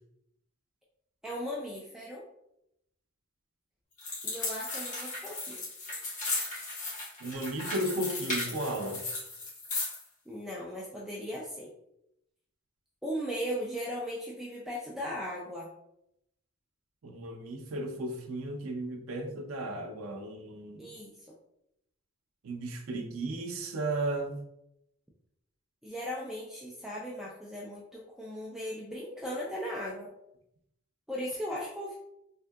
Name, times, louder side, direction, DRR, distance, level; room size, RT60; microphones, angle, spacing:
voice 1, 1.2-2.2 4.2-5.6 10.3-11.7 13.0-15.7 20.8-21.1 25.8-30.1 31.1-32.0, equal, ahead, -4 dB, 0.3 m, -37 dB
sound 1, 4.0-10.0, left 2 dB, 35° left, 1.1 m, -36 dB
voice 2, 7.2-9.0 17.0-20.9 22.4-24.4, right 1 dB, 85° right, 3 dB, 0.5 m, -34 dB
3.5 x 2.7 x 2.2 m, 0.81 s
head